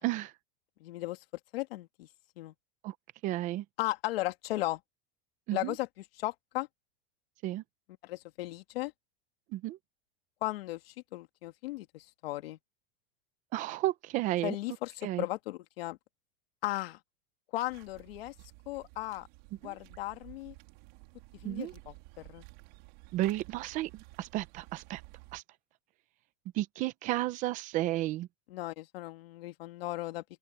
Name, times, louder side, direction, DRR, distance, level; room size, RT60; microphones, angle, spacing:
voice 1, 0.0-0.3 2.8-3.0 3.2-3.6 5.5-5.7 7.4-7.6 9.5-9.8 13.5-14.6 15.0-15.3 19.6-19.8 21.4-21.7 23.1-25.0 25.3-25.4 26.5-28.3, right 16 dB, 25° right, 0.6 m, -32 dB
voice 2, 0.8-1.2 1.5-2.1 2.4-2.5 3.8-4.8 5.5-5.9 6.2-6.7 8.0-8.9 10.4-12.6 14.4-16.0 16.6-17.0 17.5-18.3 18.7-19.3 19.6-20.5 21.4-21.7 22.2-22.4 28.5-30.2, left 17 dB, 75° left, 1.9 m, -36 dB
sound 1, 17.7-25.4, right 24 dB, 45° right, 2.7 m, -54 dB
open air
supercardioid pair, 175°, 30 cm